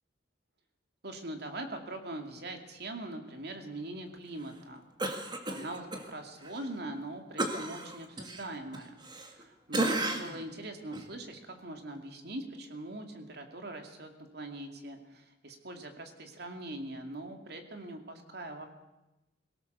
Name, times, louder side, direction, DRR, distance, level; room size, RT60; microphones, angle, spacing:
voice 1, 1.0-18.7, right 2 dB, 60° right, 5 dB, 2.5 m, -42 dB
Cough, 5.0-6.0 6.4-6.6 7.4-9.4 9.7-10.4 10.9-11.1, right 2 dB, 25° right, 2.1 m, -33 dB
22.5 x 18.0 x 6.8 m, 0.98 s
head